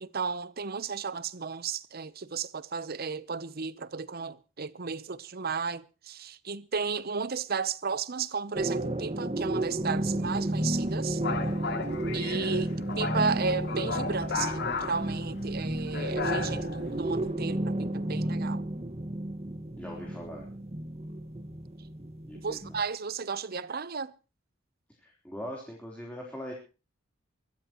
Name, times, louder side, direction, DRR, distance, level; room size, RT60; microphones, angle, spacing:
voice 1, 0.0-11.2 12.1-18.6 22.3-24.1, right 5 dB, 50° right, 0.8 m, -34 dB
sound 1, 8.5-22.8, right 1 dB, 30° right, 1.6 m, -32 dB
sound 2, 9.9-17.3, left 4 dB, 55° left, 2.3 m, -36 dB
voice 2, 19.8-20.5 22.2-22.6 25.0-26.5, equal, 5° left, 3.7 m, -41 dB
24.0 x 14.0 x 3.0 m
head